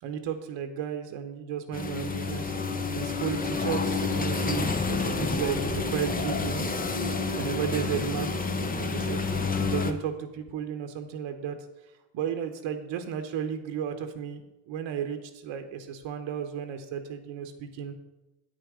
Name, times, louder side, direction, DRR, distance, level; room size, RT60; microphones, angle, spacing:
voice 1, 0.0-2.6 2.9-6.7 7.3-11.6 12.1-17.9, right 8 dB, 65° right, 7 dB, 1.0 m, -34 dB
sound 1, 1.7-9.9, left 4 dB, 20° left, 0.6 m, -29 dB
8.6 x 6.5 x 4.9 m, 0.97 s
supercardioid pair, 95°, 50 cm